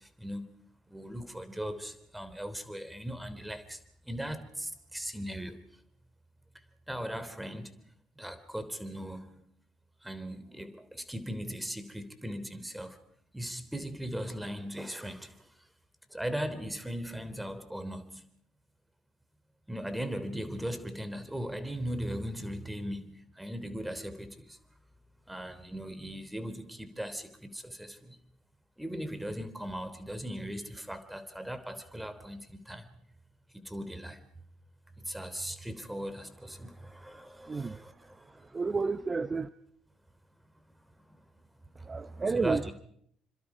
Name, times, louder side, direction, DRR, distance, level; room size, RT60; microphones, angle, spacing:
voice 1, 0.9-3.6 4.1-4.5 4.9-5.5 6.9-7.7 8.2-9.2 10.0-12.9 13.3-15.2 16.1-18.0 19.7-23.1 23.4-24.3 25.3-27.3 27.8-27.9 28.8-32.4 32.7-32.8 33.7-34.2 35.1-36.7 37.0-37.1 37.4-37.8 42.3-42.7, equal, 5° right, 12 dB, 3.3 m, -38 dB
voice 2, 37.5-37.8 38.5-39.5 41.9-42.7, right 4 dB, 30° right, 13 dB, 0.8 m, -30 dB
28.5 x 25.5 x 4.9 m, 0.67 s
hypercardioid pair, 55°, 0 cm